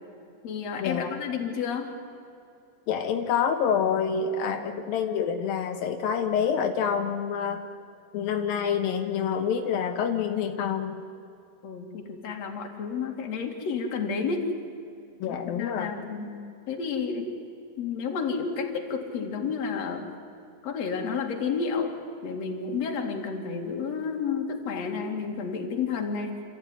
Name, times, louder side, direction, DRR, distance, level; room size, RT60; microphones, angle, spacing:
voice 1, 0.4-1.9 4.4-4.6 11.6-14.4 15.3-17.3 17.8-20.1 20.6-22.0 22.2-26.4, left 5 dB, 50° left, 2 dB, 3.2 m, -31 dB
voice 2, 2.9-7.6 8.1-11.0 15.2-15.9, left 7 dB, 85° left, 5 dB, 2.9 m, -27 dB
27.5 x 15.0 x 9.7 m, 2.5 s
omnidirectional pair, 4.1 m